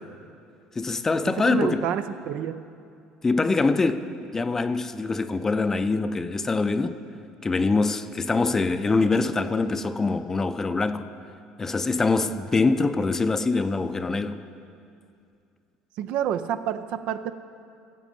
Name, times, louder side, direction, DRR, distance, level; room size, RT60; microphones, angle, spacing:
voice 1, 0.8-1.9 3.2-7.0 7.4-11.1 11.6-14.4, left 3 dB, 20° left, 0.5 m, -24 dB
voice 2, 1.3-2.6 16.0-17.3, right 9 dB, 65° right, 0.5 m, -28 dB
15.0 x 7.4 x 5.3 m
supercardioid pair, 90°, 2 cm